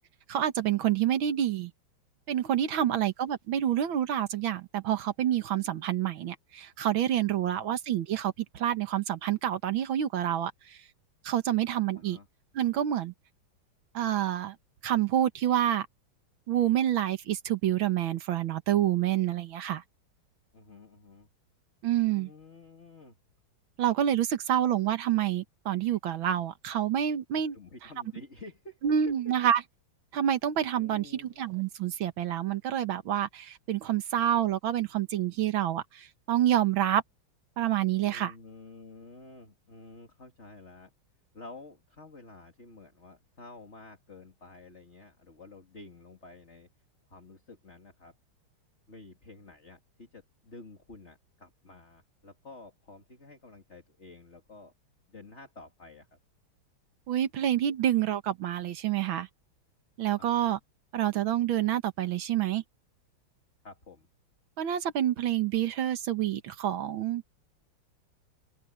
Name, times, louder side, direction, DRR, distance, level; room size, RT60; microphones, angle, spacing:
voice 1, 0.3-1.7 2.3-10.8 11.2-12.2 12.6-13.1 13.9-14.6 14.8-15.9 16.5-19.8 21.8-22.3 23.8-27.6 28.8-29.6 30.1-37.0 37.6-38.3 57.1-59.3 60.0-60.6 60.9-62.6 64.6-67.4, right 11 dB, 70° right, 2.0 m, -28 dB
voice 2, 2.7-3.0 7.4-7.8 11.9-12.3 20.5-21.3 22.0-23.2 27.5-28.8 30.8-31.4 38.1-40.9 41.3-46.7 47.1-48.1 48.9-54.7 55.1-56.2 60.2-60.5 63.6-64.1, left 3 dB, 30° left, 2.9 m, -50 dB
open air
omnidirectional pair, 2.3 m